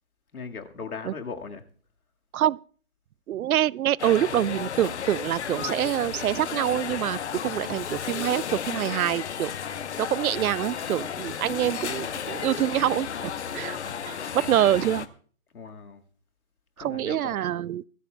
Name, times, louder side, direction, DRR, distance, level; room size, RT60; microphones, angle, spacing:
voice 1, 0.3-1.7 15.5-16.0 16.8-17.4, left 5 dB, 90° left, 2.0 m, -38 dB
voice 2, 3.3-9.5 10.0-13.8 14.1-15.1 16.8-17.8, right 12 dB, 80° right, 0.5 m, -26 dB
sound 1, 4.0-15.1, left 8 dB, 50° left, 1.0 m, -33 dB
21.5 x 13.5 x 2.3 m
hypercardioid pair, 160°, 43 cm